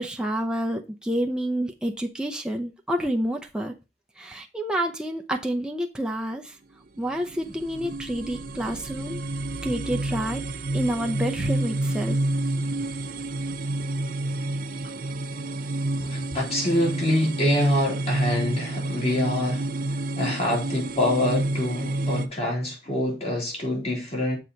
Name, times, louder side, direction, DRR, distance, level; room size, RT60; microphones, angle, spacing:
voice 1, 0.0-3.7 4.2-6.5 7.0-9.2 9.6-10.4 10.7-12.2, right 1 dB, 5° right, 0.6 m, -28 dB
sound 1, 7.0-22.3, right 2 dB, 50° right, 0.6 m, -29 dB
voice 2, 16.1-24.4, left 1 dB, 35° left, 3.0 m, -26 dB
6.8 x 4.0 x 5.6 m
head